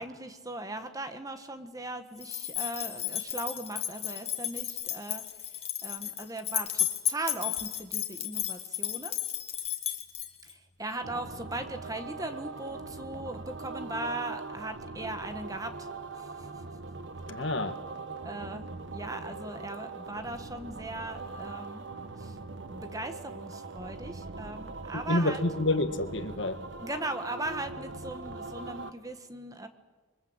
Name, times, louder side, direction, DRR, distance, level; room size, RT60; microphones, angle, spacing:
voice 1, 0.0-5.5 5.8-9.1 10.4-15.9 16.2-16.5 18.2-18.7 18.9-21.8 22.2-22.4 22.7-25.4 26.8-29.7, right 2 dB, 15° right, 1.6 m, -38 dB
sound 1, 2.2-10.5, left 10 dB, 30° left, 2.4 m, -33 dB
sound 2, 11.0-28.9, right 3 dB, 65° right, 1.4 m, -41 dB
voice 2, 17.3-17.8 25.1-26.6, left 2 dB, 65° left, 1.9 m, -28 dB
27.5 x 24.0 x 8.1 m
head